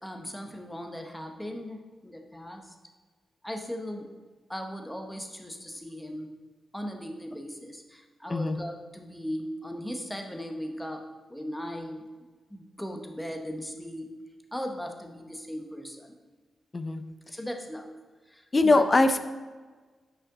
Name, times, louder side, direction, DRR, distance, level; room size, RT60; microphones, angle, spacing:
voice 1, 0.0-2.7 3.4-4.1 4.5-6.3 6.7-12.0 12.5-14.1 14.5-16.2 17.3-17.9 18.3-18.8, equal, 5° left, 4 dB, 0.8 m, -38 dB
voice 2, 18.5-19.2, left 2 dB, 25° left, 10 dB, 0.4 m, -22 dB
9.8 x 5.6 x 3.6 m, 1.4 s
wide cardioid pair, 160°, 0 cm